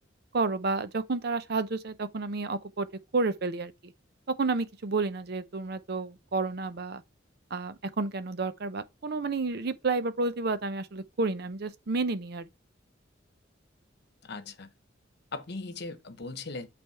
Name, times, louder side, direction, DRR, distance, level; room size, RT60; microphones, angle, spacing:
voice 1, 0.3-2.9 3.1-3.7 4.3-7.0 7.5-12.5, right 3 dB, 55° right, 0.6 m, -30 dB
voice 2, 14.2-14.7 15.3-16.7, left 3 dB, 60° left, 0.9 m, -39 dB
8.4 x 3.4 x 3.3 m
head